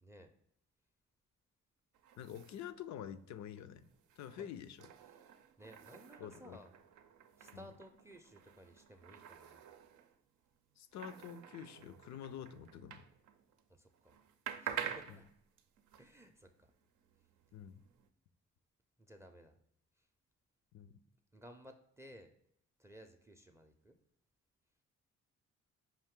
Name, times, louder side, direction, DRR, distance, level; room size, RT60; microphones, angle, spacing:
voice 1, 0.0-0.3 4.4-4.5 5.6-6.7 7.4-9.6 13.7-14.2 14.6-15.3 16.0-16.7 19.0-19.6 20.0-20.1 21.3-22.3 22.8-24.0, equal, 10° right, 7 dB, 0.4 m, -57 dB
sound 1, 1.9-13.7 13.9-18.1, right 9 dB, 80° right, 0.5 m, -49 dB
voice 2, 2.2-3.9 4.2-4.9 6.2-6.6 7.5-7.6 10.8-13.0 15.1-15.2 17.5-17.8 20.7-21.0, left 9 dB, 65° left, 13 dB, 0.5 m, -47 dB
5.6 x 2.6 x 3.6 m, 0.72 s
cardioid pair, 90°, 30 cm